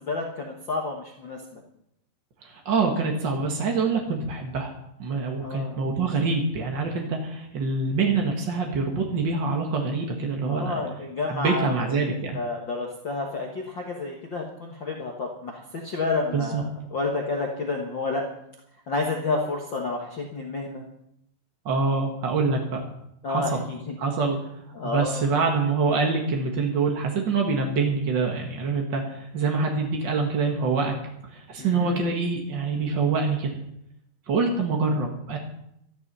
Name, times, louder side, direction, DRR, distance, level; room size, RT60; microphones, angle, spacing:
voice 1, 0.0-1.6 5.4-5.8 10.5-18.2 18.9-20.8 23.2-23.9 24.7-25.3 31.6-32.0, left 3 dB, 70° left, 0 dB, 1.1 m, -30 dB
voice 2, 2.4-4.7 5.0-10.8 11.3-12.4 16.3-16.6 21.6-22.8 23.3-23.7 24.0-24.4 24.8-30.9 31.3-33.5 34.3-35.4, right 4 dB, 65° right, 1 dB, 1.1 m, -25 dB
13.5 x 13.0 x 5.6 m, 0.76 s
omnidirectional pair, 4.9 m